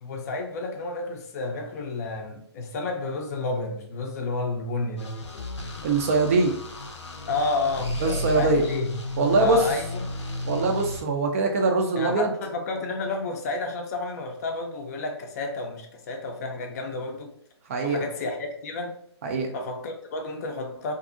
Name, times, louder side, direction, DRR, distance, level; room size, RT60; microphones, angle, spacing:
voice 1, 0.0-5.1 7.3-8.9 9.4-10.1 12.0-17.3 17.8-19.0 19.5-20.9, left 3 dB, 35° left, 0.5 m, -31 dB
sound 1, 5.0-11.0, left 1 dB, 85° left, 0.6 m, -34 dB
voice 2, 5.8-6.5 8.0-8.6 9.2-9.6 10.5-12.3 17.7-18.0 19.2-19.5, right 3 dB, 30° right, 0.4 m, -22 dB
2.6 x 2.5 x 2.5 m
hypercardioid pair, 140°, 14 cm